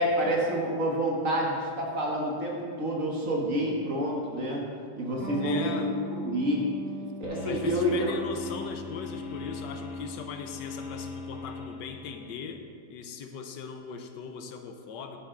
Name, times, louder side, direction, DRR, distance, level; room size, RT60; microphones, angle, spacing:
voice 1, 0.0-4.7 5.0-6.7 7.2-8.1, equal, 50° right, -2 dB, 1.9 m, -28 dB
Electric guitar, 5.2-12.3, right 1 dB, 30° left, 2.8 m, -42 dB
voice 2, 5.4-5.9 7.4-12.6 12.9-15.2, left 6 dB, 80° left, 6 dB, 1.5 m, -39 dB
sound 1, 7.2-12.3, left 4 dB, 55° left, 1.1 m, -40 dB
10.5 x 9.4 x 3.9 m, 2.1 s
omnidirectional pair, 1.9 m